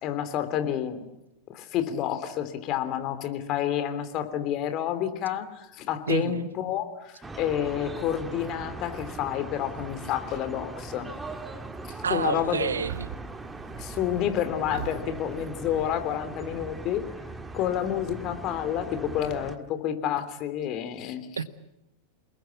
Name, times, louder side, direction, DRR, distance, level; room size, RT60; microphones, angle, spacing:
voice 1, 0.0-1.1 1.5-11.1 11.9-12.7 13.8-17.0 17.5-21.3, left 10 dB, 35° left, 9 dB, 3.2 m, -29 dB
voice 2, 6.1-6.5 12.0-13.1 21.4-21.5, right 6 dB, 70° right, 14 dB, 1.2 m, -29 dB
sound 1, 7.2-19.6, right 3 dB, 10° right, 1.9 m, -40 dB
sound 2, 10.1-10.7 11.1-11.8 12.0-12.3 12.7-16.2, right 10 dB, 45° right, 3.5 m, -43 dB
29.0 x 20.0 x 8.5 m, 0.90 s
figure-of-eight pair, 90°, 0 cm